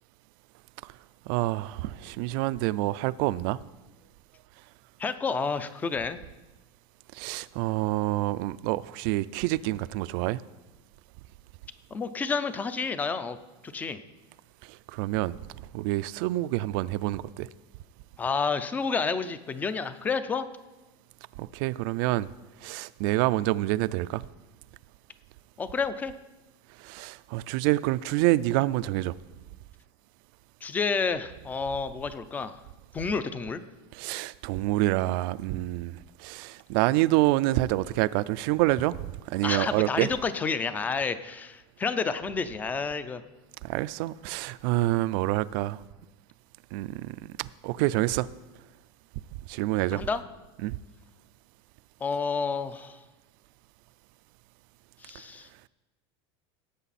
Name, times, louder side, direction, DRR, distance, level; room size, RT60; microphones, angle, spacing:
voice 1, 1.3-3.6 7.1-10.4 14.6-15.4 15.7-17.5 21.4-22.3 22.6-24.2 26.8-29.2 33.9-40.1 43.6-45.8 46.7-48.3 49.5-50.1 50.6-50.8, right 17 dB, 55° right, 0.4 m, -27 dB
voice 2, 5.0-6.2 11.9-13.4 13.7-14.0 18.2-20.5 25.6-26.1 30.6-32.6 32.9-33.6 39.4-43.2 49.9-50.2 52.0-53.0 55.0-55.5, left 5 dB, 10° left, 0.4 m, -30 dB
17.0 x 8.2 x 4.2 m
supercardioid pair, 170°, 14 cm